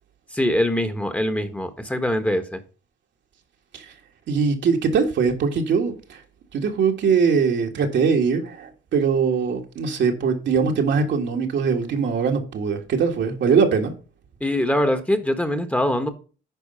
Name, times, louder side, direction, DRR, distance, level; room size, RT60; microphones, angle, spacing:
voice 1, 0.3-2.6 14.4-16.1, left 1 dB, 5° left, 1.2 m, -23 dB
voice 2, 4.3-6.2 6.5-13.9, right 5 dB, 65° right, 1.8 m, -21 dB
10.0 x 4.3 x 5.6 m
cardioid pair, 90°, 20 cm